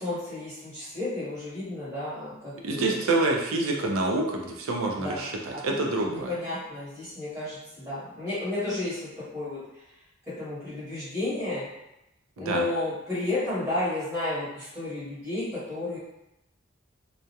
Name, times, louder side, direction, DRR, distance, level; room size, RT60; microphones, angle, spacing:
voice 1, 0.0-3.0 5.0-5.3 5.5-9.6 10.3-11.7 12.4-16.0, left 2 dB, 15° right, -10 dB, 0.9 m, -32 dB
voice 2, 2.6-6.3 12.4-12.6, right 2 dB, 90° right, 0 dB, 0.4 m, -27 dB
2.3 x 2.0 x 2.7 m, 0.89 s
head